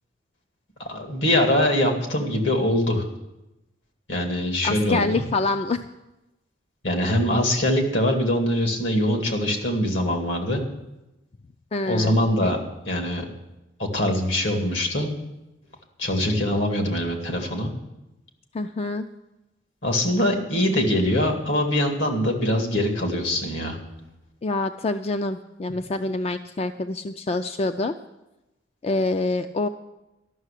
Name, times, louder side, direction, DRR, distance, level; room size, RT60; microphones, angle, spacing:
voice 1, 0.9-3.0 4.1-5.2 6.8-10.6 11.9-12.6 12.9-13.2 13.8-15.1 16.0-17.7 19.8-23.8, left 1 dB, 75° left, 3 dB, 2.2 m, -23 dB
voice 2, 4.6-5.8 11.7-12.2 18.5-19.1 24.4-27.9 28.8-29.7, left 2 dB, 35° left, 9 dB, 0.4 m, -26 dB
12.5 x 6.5 x 9.9 m, 0.98 s
head